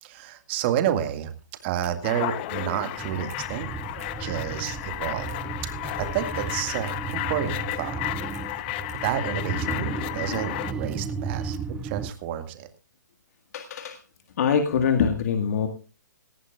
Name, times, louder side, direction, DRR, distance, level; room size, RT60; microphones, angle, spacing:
voice 1, 0.0-1.3 1.6-3.7 4.2-5.3 6.0-8.0 9.0-11.6 11.8-12.7, right 11 dB, 35° right, 8 dB, 2.0 m, -30 dB
sound 1, 1.3-1.6 1.8-1.9 2.3-2.8 3.1-3.4 3.8-4.1 4.6-4.7 5.0-9.1 9.5-10.4 10.7-11.6, right 6 dB, 55° right, 4.9 m, -47 dB
sound 2, 2.0-10.7, left 16 dB, 35° left, 0.9 m, -33 dB
sound 3, 2.9-12.1, right 5 dB, 10° right, 0.7 m, -34 dB
voice 2, 13.5-14.0 14.4-15.7, left 6 dB, 55° left, 6 dB, 1.8 m, -23 dB
18.5 x 14.5 x 2.5 m, 0.32 s
hypercardioid pair, 145°, 10 cm